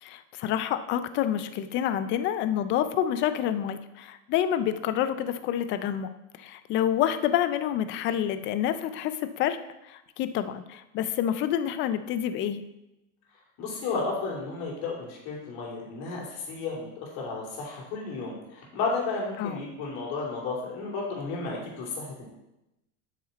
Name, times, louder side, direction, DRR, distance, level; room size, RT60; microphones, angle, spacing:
voice 1, 0.0-6.1 6.4-9.6 9.9-12.6 19.4-19.6, left 10 dB, 30° left, 11 dB, 0.4 m, -28 dB
voice 2, 13.6-22.2, left 4 dB, 60° left, -2 dB, 3.0 m, -33 dB
7.9 x 6.2 x 4.1 m, 0.92 s
supercardioid pair, 145°, 40 cm